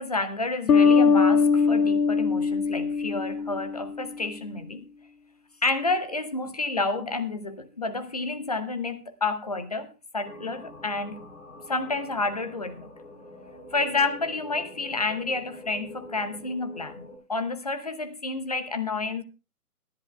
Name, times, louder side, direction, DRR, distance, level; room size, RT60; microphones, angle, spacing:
voice 1, 0.0-4.9 5.6-9.9 10.1-11.2 11.7-12.9 13.7-19.2, left 3 dB, 25° left, 0.6 m, -30 dB
sound 1, 0.7-4.0, left 5 dB, 70° left, 0.7 m, -21 dB
sound 2, 10.2-17.2, left 1 dB, 50° left, 3.2 m, -45 dB
25.0 x 10.5 x 2.3 m
figure-of-eight pair, 140°, 46 cm